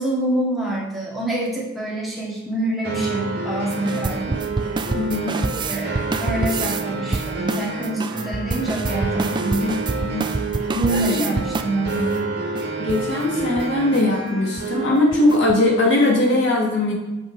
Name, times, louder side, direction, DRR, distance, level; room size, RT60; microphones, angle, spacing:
voice 1, 0.0-4.4 5.7-9.7 10.7-12.1, right 1 dB, ahead, -6 dB, 2.2 m, -26 dB
sound 1, 2.8-14.9, right 3 dB, 50° right, 2.0 m, -29 dB
sound 2, 3.7-6.8 7.1-12.1 12.6-12.7 12.9-13.1 13.4-13.7 13.9-14.0 14.4-14.7 15.1-15.6, right 3 dB, 25° right, 0.4 m, -27 dB
voice 2, 4.9-5.4 9.6-10.3 10.9-11.4 12.8-16.9, left 1 dB, 65° left, -3 dB, 2.4 m, -20 dB
7.9 x 5.1 x 4.9 m, 1.1 s
head